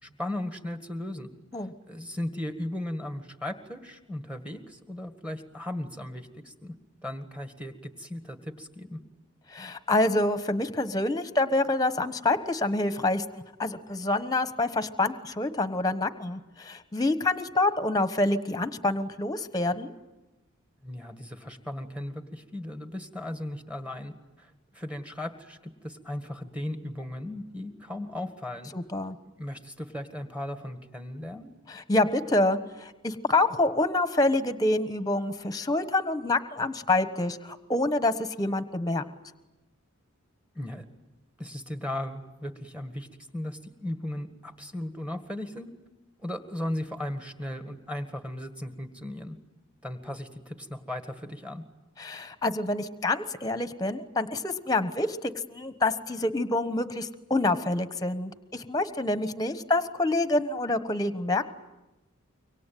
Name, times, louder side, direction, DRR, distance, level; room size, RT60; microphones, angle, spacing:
voice 1, 0.0-1.3 1.5-6.7 7.0-9.0 20.8-28.7 29.4-31.5 40.6-40.8 41.4-43.1 43.3-45.7 46.2-49.4 49.8-51.6, left 1 dB, 5° right, 8 dB, 1.8 m, -36 dB
voice 2, 9.5-19.9 28.7-29.2 31.7-39.0 52.0-61.5, left 2 dB, 15° left, 12 dB, 1.2 m, -27 dB
25.5 x 24.0 x 9.3 m, 1.0 s
head